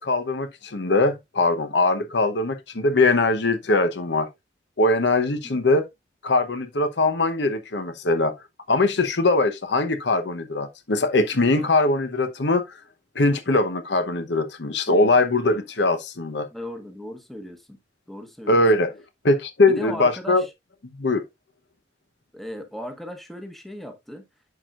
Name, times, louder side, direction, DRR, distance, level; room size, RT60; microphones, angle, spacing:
voice 1, 0.0-4.3 4.8-5.9 6.2-8.3 8.7-12.8 13.1-16.5 18.5-18.9 19.2-20.4 21.0-21.2, left 2 dB, 65° left, 0.9 m, -21 dB
voice 2, 14.9-15.2 16.5-17.8 18.1-18.6 19.6-20.5 22.3-24.3, left 1 dB, ahead, 1.0 m, -37 dB
11.0 x 4.6 x 2.4 m
head